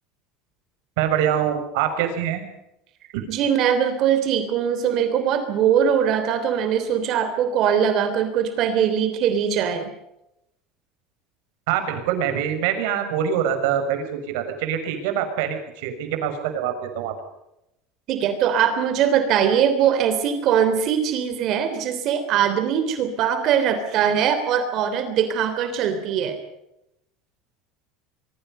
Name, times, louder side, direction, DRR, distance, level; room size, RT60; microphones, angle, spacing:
voice 1, 1.0-2.4 3.1-3.3 11.7-17.1, right 9 dB, 75° right, 7 dB, 6.1 m, -24 dB
voice 2, 3.3-9.9 18.1-26.4, right 8 dB, 45° right, 9 dB, 3.2 m, -21 dB
25.5 x 23.5 x 5.5 m, 0.85 s
cardioid pair, 155°, 0 cm